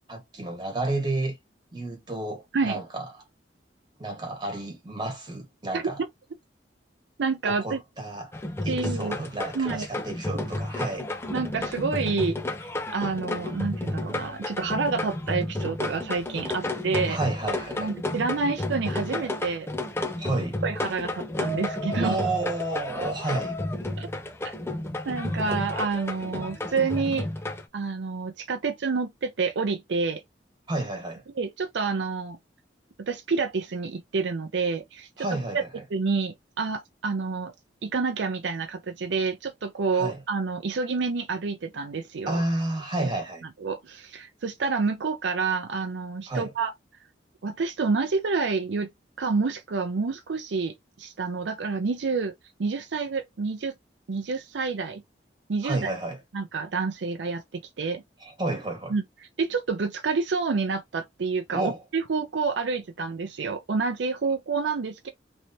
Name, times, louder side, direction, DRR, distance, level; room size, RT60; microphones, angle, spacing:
voice 1, 0.1-1.4 1.7-3.0 4.0-6.0 7.5-8.3 8.6-11.1 17.1-17.9 20.2-20.6 22.0-23.5 30.7-31.2 35.2-35.8 39.9-40.2 42.3-43.5 46.3-46.5 55.6-56.2 58.2-58.9 61.5-61.8, right 2 dB, 25° right, 1.5 m, -31 dB
voice 2, 7.2-7.8 8.7-9.2 9.5-9.9 11.3-17.2 17.8-19.7 20.6-22.2 24.0-24.1 25.0-27.3 27.7-30.2 31.4-32.4 33.0-35.3 35.5-35.6 35.9-37.5 37.8-42.4 43.0-43.1 43.6-46.7 47.4-48.9 49.2-52.3 52.6-53.7 54.1-55.0 55.5-55.9 56.3-58.0 58.9-59.0 59.4-65.1, right 4 dB, 75° right, 0.5 m, -28 dB
sound 1, 8.3-27.6, left 1 dB, 15° left, 0.5 m, -32 dB
3.2 x 2.8 x 2.7 m
head